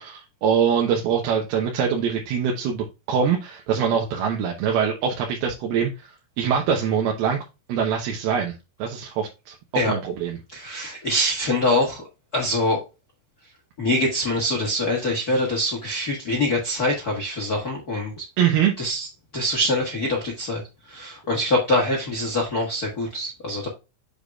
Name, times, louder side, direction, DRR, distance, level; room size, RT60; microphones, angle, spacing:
voice 1, 0.0-6.1 6.4-7.4 7.7-8.5 8.8-10.4 18.4-18.8, right 7 dB, 80° right, 3.0 m, -23 dB
voice 2, 10.5-12.0 12.3-12.8 13.8-18.2 18.8-19.1 19.3-20.6 20.9-23.7, left 1 dB, 55° left, 1.0 m, -24 dB
7.2 x 6.6 x 2.3 m
omnidirectional pair, 4.4 m